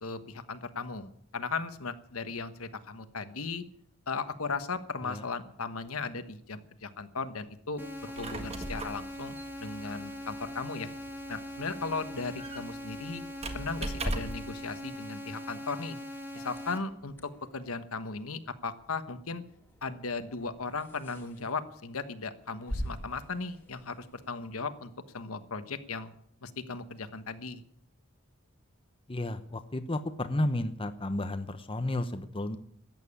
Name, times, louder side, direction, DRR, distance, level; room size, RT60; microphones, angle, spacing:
voice 1, 0.0-3.6 4.1-10.9 11.3-13.2 13.5-16.0 16.3-19.4 19.8-26.1 26.4-27.6, left 4 dB, 75° left, 10 dB, 1.2 m, -37 dB
sound 1, 7.8-16.8, equal, 10° right, 1.8 m, -41 dB
Squeak, 7.9-14.6, right 1 dB, 30° right, 1.6 m, -39 dB
sound 2, 16.4-24.7, equal, 10° left, 2.2 m, -46 dB
voice 2, 29.1-32.6, left 1 dB, 25° left, 9 dB, 0.8 m, -32 dB
14.0 x 9.1 x 9.9 m, 0.68 s
head